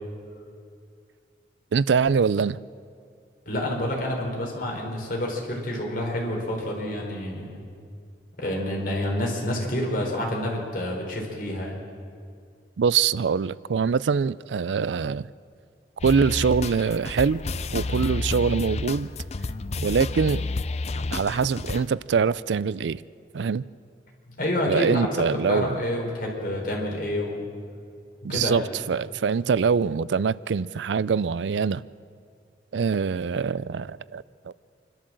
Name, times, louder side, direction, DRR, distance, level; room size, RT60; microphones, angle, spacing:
voice 1, 1.7-2.6 12.8-15.3 16.0-17.4 17.7-19.1 19.8-20.4 21.1-23.0 23.3-23.6 24.7-25.8 28.2-28.6 28.9-31.8 32.7-34.5, right 6 dB, 90° right, 0.4 m, -24 dB
voice 2, 3.5-7.6 8.4-11.8 24.3-25.1 25.5-27.4 28.3-28.7, left 1 dB, 55° left, 4.4 m, -28 dB
sound 1, 16.0-21.9, left 3 dB, 40° left, 0.5 m, -30 dB
27.5 x 12.5 x 7.6 m
head